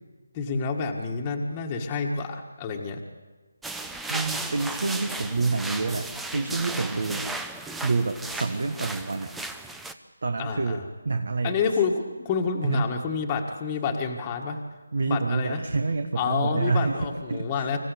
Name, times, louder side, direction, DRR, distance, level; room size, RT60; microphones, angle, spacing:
voice 1, 0.3-3.0 10.4-10.8 11.4-14.6 15.1-15.6 16.2-17.8, left 5 dB, 15° left, 0 dB, 1.6 m, -28 dB
sound 1, 3.6-9.9, right 2 dB, 5° right, 0.6 m, -35 dB
voice 2, 4.1-7.3 7.8-9.3 10.2-11.6 12.6-12.9 14.9-17.7, right 3 dB, 60° right, 6 dB, 1.5 m, -28 dB
26.0 x 15.5 x 8.4 m, 1.3 s
figure-of-eight pair, 165°, 0 cm